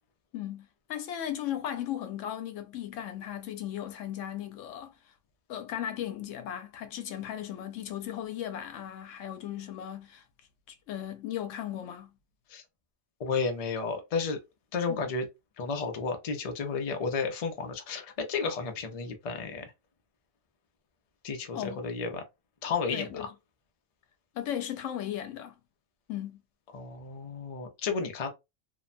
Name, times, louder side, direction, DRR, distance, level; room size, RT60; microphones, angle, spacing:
voice 1, 0.3-4.9 5.5-10.2 10.7-12.1 14.9-15.0 21.5-21.8 22.9-23.3 24.3-25.6 26.1-26.4, left 11 dB, 90° left, 0.9 m, -36 dB
voice 2, 13.2-14.4 14.7-15.3 15.6-19.7 21.2-22.2 22.6-23.3 26.7-28.3, left 4 dB, 45° left, 0.5 m, -32 dB
2.7 x 2.1 x 2.5 m
omnidirectional pair, 1.3 m